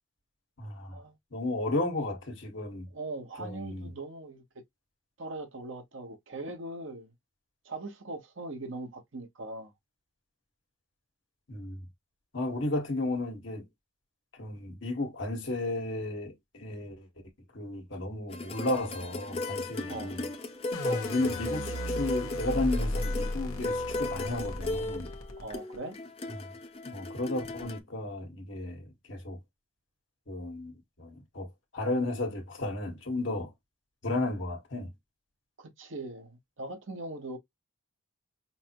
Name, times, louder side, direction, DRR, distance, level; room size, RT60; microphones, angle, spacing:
voice 1, 0.6-1.0 1.3-2.9 3.4-3.9 11.5-11.8 12.3-13.7 14.3-17.1 17.5-20.3 21.1-25.1 26.8-29.4 30.3-33.5 34.0-34.9, left 2 dB, 60° left, 1.6 m, -33 dB
voice 2, 2.9-4.4 5.2-7.1 7.6-9.7 19.9-20.2 20.8-21.1 25.4-26.0 35.6-37.4, right 2 dB, 60° right, 1.0 m, -40 dB
sound 1, 18.3-27.8, left 2 dB, 30° left, 0.6 m, -36 dB
sound 2, 20.7-25.8, left 1 dB, 80° left, 1.1 m, -35 dB
5.6 x 2.1 x 2.9 m
head